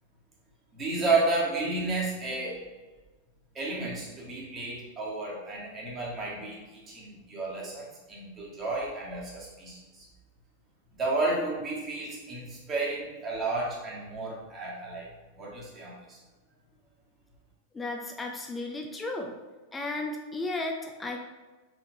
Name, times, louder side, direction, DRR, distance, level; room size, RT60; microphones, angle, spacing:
voice 1, 0.7-2.6 3.5-10.1 11.0-15.1 15.4-16.2, right 3 dB, 25° right, -4 dB, 1.3 m, -32 dB
voice 2, 17.7-19.3 19.7-21.2, left 2 dB, 15° left, 2 dB, 0.4 m, -34 dB
4.3 x 3.6 x 2.7 m, 1.2 s
figure-of-eight pair, 90°, 0 cm